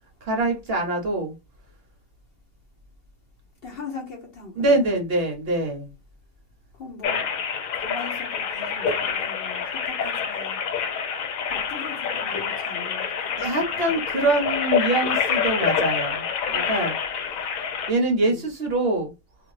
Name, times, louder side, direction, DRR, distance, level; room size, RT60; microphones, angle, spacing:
voice 1, 0.2-1.4 4.6-5.9 13.4-16.9 17.9-19.1, right 2 dB, 55° right, 0.8 m, -24 dB
voice 2, 3.6-4.9 6.7-7.3 7.7-10.6 11.5-13.4 13.7-13.9 18.2-18.4, left 4 dB, 50° left, 0.8 m, -40 dB
sound 1, 7.0-17.9, left 7 dB, 75° left, 1.0 m, -27 dB
2.6 x 2.5 x 3.1 m
omnidirectional pair, 1.4 m